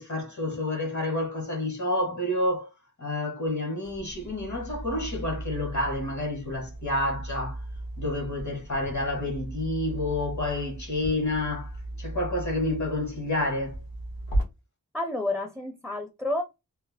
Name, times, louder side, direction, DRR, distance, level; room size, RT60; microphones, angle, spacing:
voice 1, 0.0-2.7 3.0-7.6 8.0-11.7 12.0-13.8, left 1 dB, 55° left, 1.3 m, -29 dB
sound 1, 3.8-14.4, right 1 dB, 70° left, 1.4 m, -36 dB
voice 2, 14.9-16.4, left 2 dB, ahead, 0.6 m, -30 dB
3.2 x 2.1 x 3.4 m
wide cardioid pair, 55°, 36 cm